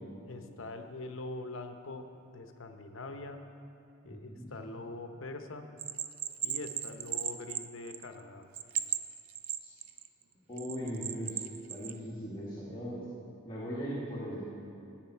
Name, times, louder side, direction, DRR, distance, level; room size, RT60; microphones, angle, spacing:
voice 1, 0.2-3.4 4.0-5.7 6.4-8.5, left 2 dB, 65° left, 6 dB, 0.8 m, -43 dB
voice 2, 4.1-4.5 9.6-9.7 10.5-11.4 11.7-13.0 13.4-14.5, equal, 20° left, -8 dB, 1.6 m, -39 dB
Bell, 5.8-8.2 8.5-10.1 10.6-12.0, right 11 dB, 65° right, 0.5 m, -36 dB
14.0 x 8.9 x 4.5 m, 2.6 s
head